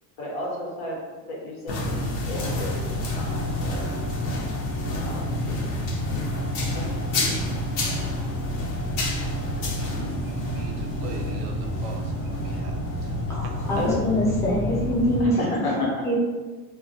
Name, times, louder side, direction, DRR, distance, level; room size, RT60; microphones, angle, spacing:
voice 1, 0.2-1.0 1.3-2.9 3.1-3.9 4.9-5.4 6.7-6.9 7.2-7.4 9.6-10.1 13.8-14.1 15.2-16.2, left 1 dB, 85° left, -3 dB, 1.0 m, -32 dB
sound 1, 1.7-15.2, left 1 dB, 60° left, 0.7 m, -28 dB
voice 2, 9.9-13.5, right 3 dB, 60° right, 3 dB, 0.5 m, -42 dB
voice 3, 13.3-15.4 16.0-16.2, equal, 5° left, -7 dB, 0.5 m, -24 dB
2.2 x 2.1 x 2.6 m, 1.3 s
supercardioid pair, 130°, 41 cm